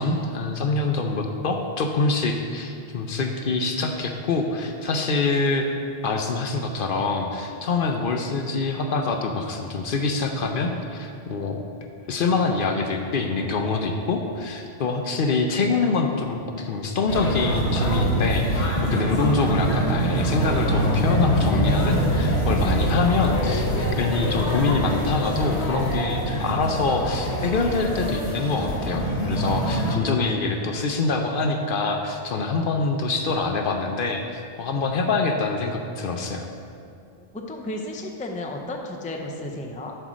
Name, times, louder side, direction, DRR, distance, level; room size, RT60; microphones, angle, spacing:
voice 1, 0.0-5.7 6.0-11.6 12.1-23.7 24.0-36.5, left 3 dB, 60° left, 4 dB, 0.7 m, -25 dB
sound 1, 17.1-30.0, right 1 dB, 75° left, 1.4 m, -24 dB
voice 2, 37.2-40.0, left 1 dB, 10° left, 1 dB, 0.4 m, -33 dB
7.8 x 4.6 x 6.2 m, 2.4 s
omnidirectional pair, 1.1 m